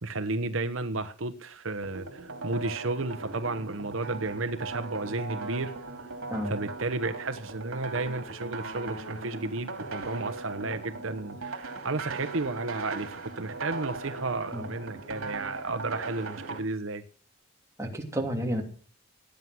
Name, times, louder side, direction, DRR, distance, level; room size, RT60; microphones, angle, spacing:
voice 1, 0.0-6.1 6.5-17.0, right 3 dB, 65° right, 10 dB, 1.0 m, -33 dB
sound 1, 1.8-16.6, right 3 dB, 80° right, 2.8 m, -39 dB
voice 2, 17.8-18.6, equal, 15° right, 1 dB, 2.9 m, -31 dB
18.5 x 9.5 x 6.2 m, 0.42 s
head